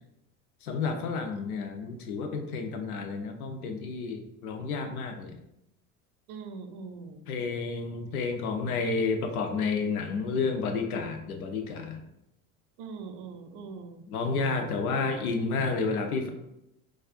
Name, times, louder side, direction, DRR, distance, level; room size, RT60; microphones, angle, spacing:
voice 1, 0.6-5.4 7.3-12.0 14.1-16.3, left 4 dB, 80° left, 6 dB, 0.7 m, -30 dB
voice 2, 6.3-7.5 12.8-14.0, right 4 dB, 45° right, 6 dB, 0.6 m, -42 dB
4.1 x 2.4 x 2.4 m, 0.83 s
hypercardioid pair, 75°, 44 cm